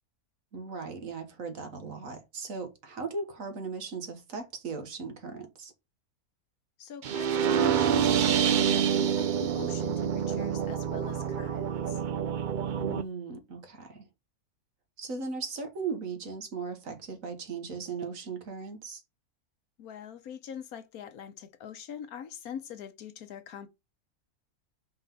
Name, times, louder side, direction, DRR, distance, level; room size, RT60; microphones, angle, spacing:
voice 1, 0.5-5.7 12.8-14.1 15.0-19.0, right 4 dB, 65° right, 1.7 m, -38 dB
voice 2, 6.8-12.0 19.8-23.7, left 8 dB, 75° left, 1.3 m, -43 dB
sound 1, 7.0-13.0, right 8 dB, 80° right, 0.4 m, -27 dB
5.2 x 3.9 x 5.3 m
omnidirectional pair, 1.6 m